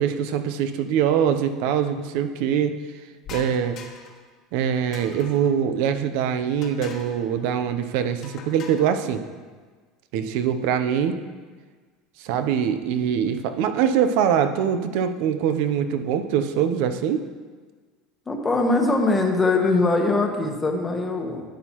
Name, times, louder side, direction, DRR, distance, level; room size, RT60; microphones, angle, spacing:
voice 1, 0.0-2.8 3.3-3.8 4.5-9.2 10.1-11.2 12.2-17.3, right 8 dB, 70° right, 9 dB, 0.6 m, -23 dB
sound 1, 3.2-4.2 4.9-5.5 6.6-7.2 8.2-9.0, left 5 dB, 45° left, 1.2 m, -41 dB
voice 2, 18.3-21.4, left 3 dB, 15° left, 2 dB, 1.1 m, -22 dB
11.5 x 8.3 x 3.0 m, 1.5 s
supercardioid pair, 140°, 0 cm